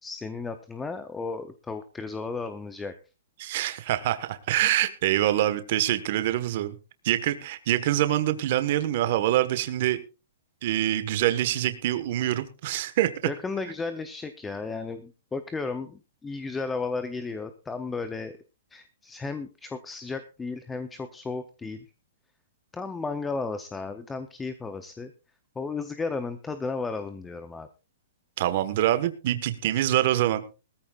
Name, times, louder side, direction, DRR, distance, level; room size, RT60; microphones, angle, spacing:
voice 1, 0.0-2.9 13.3-18.4 18.7-21.8 22.7-25.1 25.6-27.7, left 4 dB, 5° left, 10 dB, 0.5 m, -34 dB
voice 2, 3.4-6.8 7.0-10.0 10.6-13.1 28.4-30.5, right 13 dB, 35° right, 11 dB, 1.2 m, -25 dB
20.5 x 14.0 x 2.4 m, 0.30 s
hypercardioid pair, 175°, 0 cm